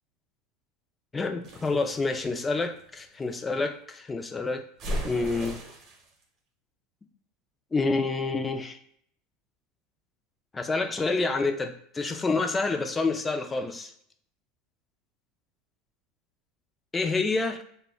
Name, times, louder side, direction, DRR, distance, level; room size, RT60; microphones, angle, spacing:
voice 1, 1.1-4.6 5.0-5.6 7.7-8.8 10.5-13.9 16.9-17.6, left 3 dB, 20° left, 0.3 m, -28 dB
sound 1, 1.4-3.3 4.8-6.1, equal, 45° right, 0.7 m, -36 dB
2.2 x 2.1 x 3.6 m
supercardioid pair, 115°, 0 cm